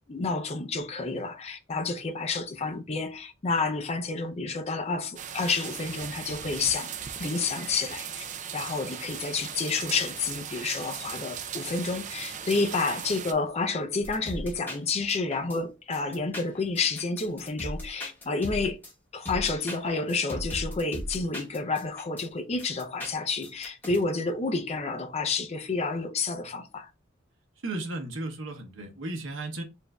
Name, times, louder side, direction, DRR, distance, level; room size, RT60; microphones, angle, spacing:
voice 1, 0.1-6.9 7.2-8.3 8.5-18.8 19.1-26.9, left 4 dB, 30° left, 0.5 m, -30 dB
sound 1, 5.2-13.3, right 8 dB, 40° right, 0.4 m, -38 dB
sound 2, 14.0-15.6 15.9-18.9 19.2-22.3 22.6-24.0, equal, 10° left, 1.0 m, -38 dB
voice 2, 27.6-29.6, right 2 dB, 70° right, 1.0 m, -34 dB
6.9 x 2.6 x 2.2 m
head